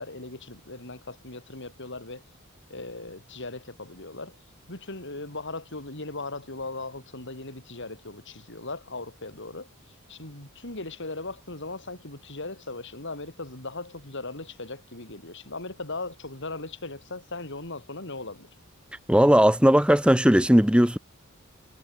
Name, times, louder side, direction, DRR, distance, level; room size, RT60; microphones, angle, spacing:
voice 1, 0.0-2.2 2.7-4.4 4.7-9.7 10.1-18.5, left 2 dB, 60° left, 5.7 m, -38 dB
voice 2, 19.1-21.0, equal, 5° right, 1.5 m, -18 dB
head